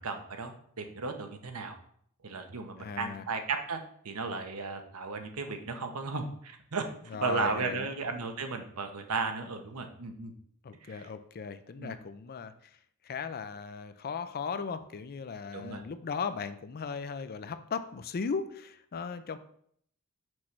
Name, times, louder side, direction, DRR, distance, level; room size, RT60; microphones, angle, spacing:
voice 1, 0.0-1.8 2.2-6.8 7.2-10.3 10.8-11.1 11.8-11.9 15.5-15.8, right 4 dB, 75° right, 6 dB, 0.9 m, -35 dB
voice 2, 2.8-3.2 7.1-7.9 10.6-12.5 13.0-19.4, left 5 dB, 45° left, 11 dB, 0.4 m, -37 dB
6.1 x 3.2 x 5.9 m, 0.64 s
head